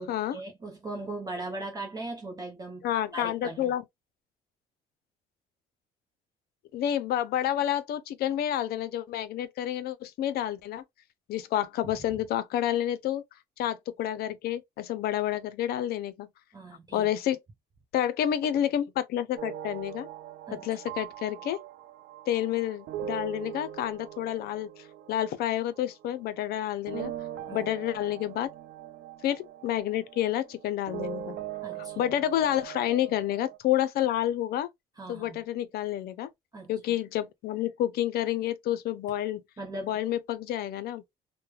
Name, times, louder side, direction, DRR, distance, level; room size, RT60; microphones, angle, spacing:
voice 1, 0.0-2.9 3.1-3.7 11.8-12.0 16.5-17.1 20.5-20.8 27.5-27.7 31.6-32.1 35.0-35.4 36.5-37.0 39.6-40.0, right 2 dB, 20° right, 0.6 m, -39 dB
voice 2, 2.8-3.8 6.7-10.8 11.3-13.2 13.6-16.3 16.9-17.4 17.9-20.1 20.5-21.6 22.3-24.7 25.1-27.1 27.5-28.5 29.2-31.4 32.0-34.7 35.1-36.3 36.7-39.4 39.8-41.0, left 11 dB, 70° left, 0.5 m, -29 dB
sound 1, 19.4-26.6 26.9-33.6, right 10 dB, 65° right, 0.5 m, -41 dB
3.1 x 2.1 x 2.3 m
cardioid pair, 110°, 17 cm